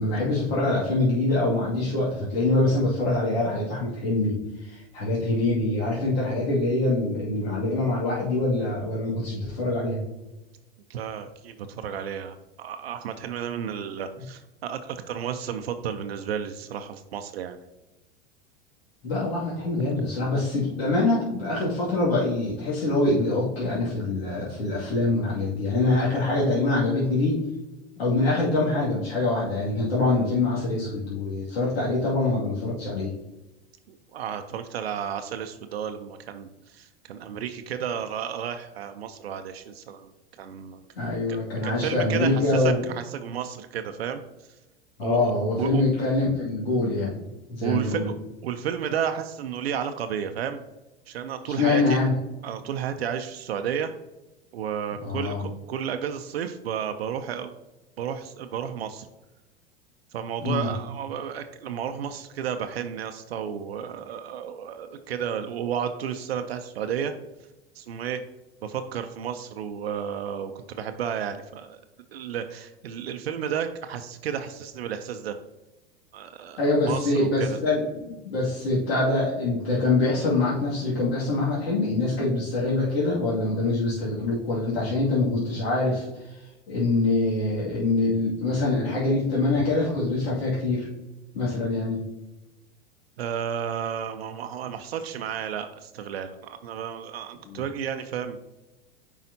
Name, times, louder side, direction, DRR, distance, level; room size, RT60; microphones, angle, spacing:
voice 1, 0.0-10.0 19.0-27.4 28.0-33.1 41.0-42.8 45.0-47.2 47.5-48.0 51.6-52.1 55.0-55.4 60.4-60.7 76.6-86.3 86.7-90.9 91.3-92.0 97.4-97.6, left 2 dB, 75° left, -7 dB, 2.3 m, -24 dB
voice 2, 10.9-17.6 33.9-41.4 41.6-44.2 45.0-45.3 45.6-45.8 47.6-50.6 51.1-52.0 52.4-53.9 54.5-57.5 58.0-59.1 60.1-67.1 67.7-68.2 68.6-71.8 72.1-75.4 76.1-77.6 89.6-89.7 93.2-98.4, right 8 dB, 75° right, 8 dB, 0.7 m, -32 dB
9.0 x 4.9 x 2.8 m, 1.0 s
hypercardioid pair, 95°, 31 cm